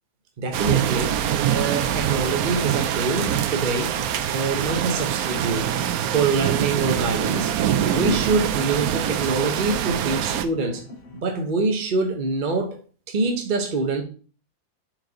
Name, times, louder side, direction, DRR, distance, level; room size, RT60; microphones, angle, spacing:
voice 1, 0.4-1.2 1.5-4.0 4.3-5.7 6.0-7.5 7.9-10.8 11.1-12.8 13.1-14.0, right 3 dB, 40° right, 0.7 m, -25 dB
sound 1, 0.5-10.5, right 10 dB, 75° right, 0.8 m, -24 dB
sound 2, 0.6-11.2, left 2 dB, 85° left, 2.8 m, -44 dB
5.8 x 4.5 x 4.0 m
omnidirectional pair, 2.1 m